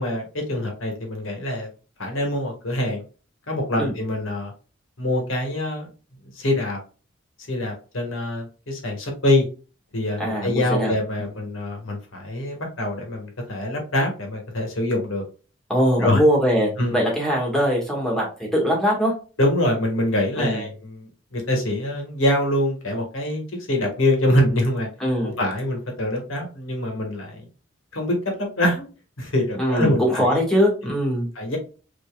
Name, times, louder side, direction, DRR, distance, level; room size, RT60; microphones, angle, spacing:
voice 1, 0.0-1.7 2.0-3.0 3.5-4.5 5.0-5.9 6.2-6.8 7.5-9.5 9.9-15.2 16.0-16.2 16.8-17.0 19.4-24.9 25.2-27.5 27.9-28.9 29.2-30.4 30.8-30.9 31.3-31.6, left 1 dB, 90° left, 1 dB, 1.5 m, -24 dB
voice 2, 10.2-10.9 11.2-11.3 15.7-18.3 18.5-19.1 20.4-20.6 25.0-25.3 29.6-31.3, equal, ahead, -3 dB, 1.6 m, -21 dB
5.3 x 2.9 x 2.3 m, 0.36 s
head